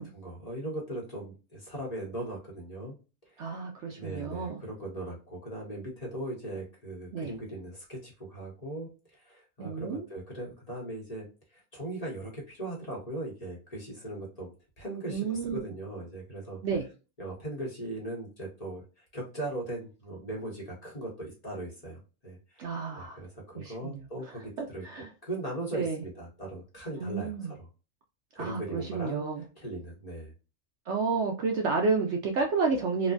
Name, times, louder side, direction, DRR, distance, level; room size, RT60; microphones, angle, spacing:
voice 1, 0.0-2.9 3.4-3.6 3.9-11.2 11.5-14.5 14.8-16.6 17.2-22.4 23.0-24.8 25.2-27.7 28.3-29.3 29.6-30.3, right 1 dB, 30° left, -3 dB, 1.0 m, -39 dB
voice 2, 3.4-4.6 7.1-7.3 9.6-10.1 15.1-15.7 16.6-16.9 22.6-23.2 23.6-24.3 24.6-25.1 25.7-26.0 27.0-27.5 28.4-29.4 30.9-33.1, right 4 dB, 65° right, 2 dB, 0.8 m, -31 dB
3.1 x 2.2 x 2.4 m, 0.32 s
omnidirectional pair, 1.5 m